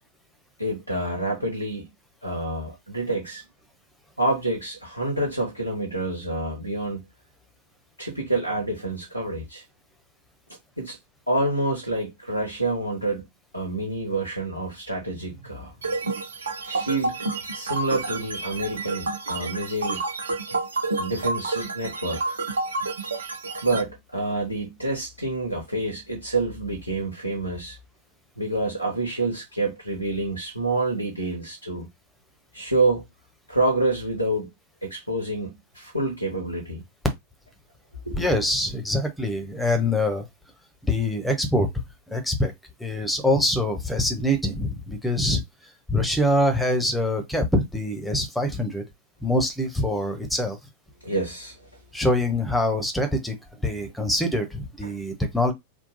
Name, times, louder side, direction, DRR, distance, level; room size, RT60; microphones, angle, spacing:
voice 1, 0.6-1.9 2.2-3.4 4.2-7.0 8.0-9.6 10.8-11.0 11.3-13.2 13.5-15.7 16.6-17.1 17.5-20.0 21.0-22.4 23.6-27.8 28.4-31.9 32.5-33.0 33.5-34.5 34.8-36.8 38.0-38.2 51.0-51.7 53.7-53.9 54.8-54.9, right 2 dB, 90° left, 1.2 m, -27 dB
sound 1, 15.8-23.8, right 3 dB, 70° right, 0.8 m, -29 dB
voice 2, 38.1-40.2 40.8-41.7 42.1-42.5 42.8-45.4 45.9-48.8 49.2-50.6 51.9-53.3 53.6-55.5, left 1 dB, 5° left, 1.1 m, -24 dB
3.7 x 2.3 x 3.9 m
figure-of-eight pair, 90°, 0 cm